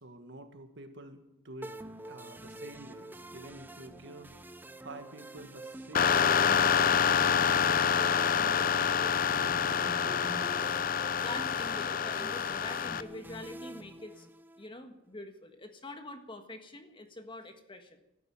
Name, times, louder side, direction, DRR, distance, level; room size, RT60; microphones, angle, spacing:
voice 1, 0.0-1.7 2.1-4.3 4.8-6.5 7.0-10.6, right 2 dB, 60° right, 7 dB, 1.8 m, -48 dB
sound 1, 1.6-14.7, right 1 dB, 10° right, 0.6 m, -46 dB
sound 2, 5.9-13.0, left 7 dB, 45° left, 0.6 m, -27 dB
voice 2, 11.2-14.3 14.6-18.0, left 2 dB, 25° left, 6 dB, 1.5 m, -45 dB
14.0 x 11.0 x 9.0 m, 0.88 s
head